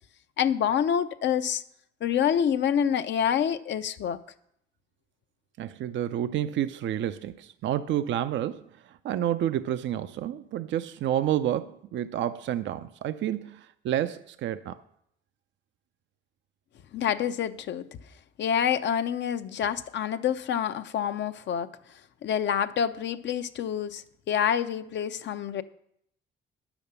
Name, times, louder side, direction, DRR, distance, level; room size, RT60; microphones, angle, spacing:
voice 1, 0.4-1.6 2.0-4.2 16.9-17.9 18.4-21.7 22.2-25.6, left 8 dB, 65° left, 10 dB, 0.7 m, -27 dB
voice 2, 5.6-8.7 9.0-14.8, right 11 dB, 70° right, 11 dB, 0.5 m, -29 dB
10.0 x 7.1 x 6.8 m, 0.72 s
cardioid pair, 90°, 20 cm